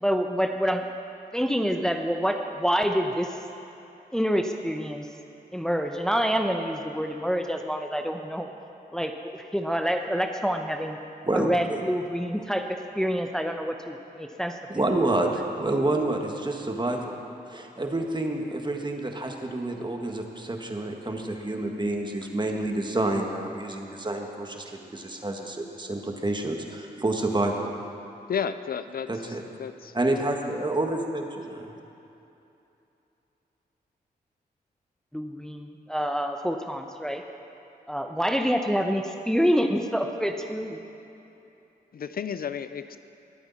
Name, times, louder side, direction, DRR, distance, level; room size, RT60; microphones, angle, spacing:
voice 1, 0.0-0.8 1.3-3.4 4.1-5.1 5.5-8.5 8.9-9.1 9.5-11.0 11.3-12.7 13.0-14.6 35.1-37.2 37.9-40.8, equal, 5° left, 4 dB, 0.8 m, -27 dB
voice 2, 11.2-11.8 14.7-17.2 17.5-27.7 29.1-29.4 29.9-31.7, right 2 dB, 25° right, 2 dB, 1.7 m, -28 dB
voice 3, 28.3-29.9 41.9-43.0, left 7 dB, 60° left, 12 dB, 0.5 m, -32 dB
21.5 x 8.7 x 4.2 m, 2.9 s
cardioid pair, 50°, 17 cm